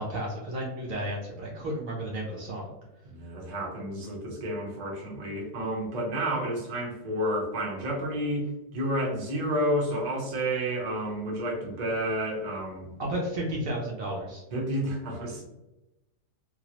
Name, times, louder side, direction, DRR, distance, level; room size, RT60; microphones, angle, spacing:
voice 1, 0.0-2.7 13.0-14.4, right 1 dB, 65° right, -2 dB, 0.9 m, -32 dB
voice 2, 3.0-8.5 8.7-12.9 14.5-15.4, equal, 40° right, -3 dB, 0.6 m, -30 dB
3.0 x 2.3 x 2.9 m, 0.97 s
omnidirectional pair, 1.8 m